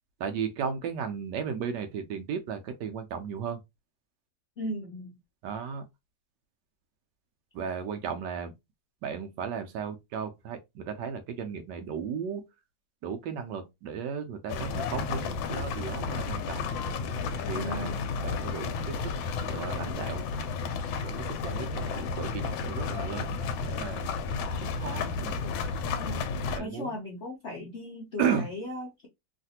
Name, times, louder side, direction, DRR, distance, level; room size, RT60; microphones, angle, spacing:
voice 1, 0.2-3.6 5.4-5.8 7.5-8.5 9.0-12.4 13.0-16.7 17.5-17.9 18.2-19.1 19.4-20.3 21.0-24.2 24.6-25.4 26.5-26.9 28.2-28.5, right 7 dB, 75° right, 1.1 m, -35 dB
voice 2, 4.6-5.1 17.5-18.0 26.0-26.3 26.6-29.1, left 1 dB, 65° left, 0.7 m, -37 dB
sound 1, 14.5-26.6, left 5 dB, 90° left, 1.4 m, -32 dB
3.2 x 2.5 x 2.7 m
omnidirectional pair, 2.1 m